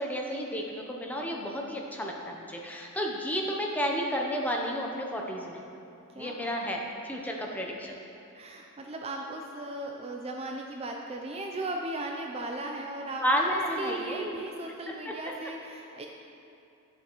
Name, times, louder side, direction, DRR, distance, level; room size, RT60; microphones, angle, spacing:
voice 1, 0.0-5.6 6.2-8.0 13.2-14.3 15.1-15.2, equal, 5° left, 0 dB, 0.7 m, -31 dB
voice 2, 6.1-6.6 8.3-16.1, right 2 dB, 25° right, 1 dB, 0.4 m, -37 dB
11.5 x 7.0 x 3.0 m, 2.7 s
head